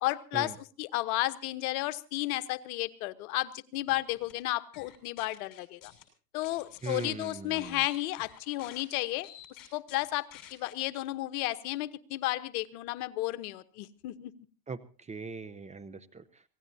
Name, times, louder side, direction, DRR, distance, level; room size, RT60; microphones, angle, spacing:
voice 1, 0.0-5.9 6.3-9.3 9.7-14.3, left 17 dB, 60° left, 13 dB, 1.2 m, -33 dB
sound 1, 3.9-4.3 4.7-6.0 6.4-10.7, left 12 dB, 40° left, 6.5 m, -51 dB
voice 2, 6.8-7.8 14.7-16.4, right 4 dB, 15° right, 11 dB, 0.8 m, -40 dB
26.0 x 17.5 x 2.8 m, 0.38 s
hypercardioid pair, 105°, 49 cm